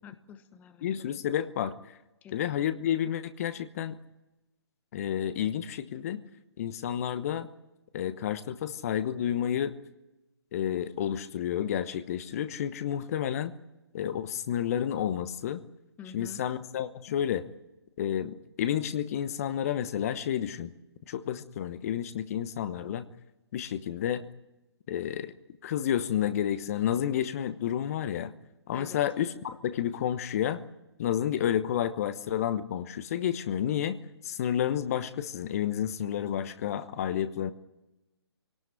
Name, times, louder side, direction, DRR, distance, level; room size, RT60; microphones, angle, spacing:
voice 1, 0.0-0.9 2.2-2.3 16.0-16.4 28.7-29.0, left 8 dB, 10° left, 10 dB, 1.0 m, -47 dB
voice 2, 0.8-1.7 2.3-4.0 4.9-6.2 6.6-7.5 7.9-9.7 10.5-13.5 13.9-15.6 16.1-17.5 18.0-20.7 21.1-23.1 23.5-24.2 24.9-25.3 25.6-28.3 28.7-30.6 31.0-34.0 34.2-37.5, left 10 dB, 35° left, 12 dB, 1.1 m, -30 dB
26.5 x 18.5 x 9.9 m, 1.0 s
figure-of-eight pair, 135°, 14 cm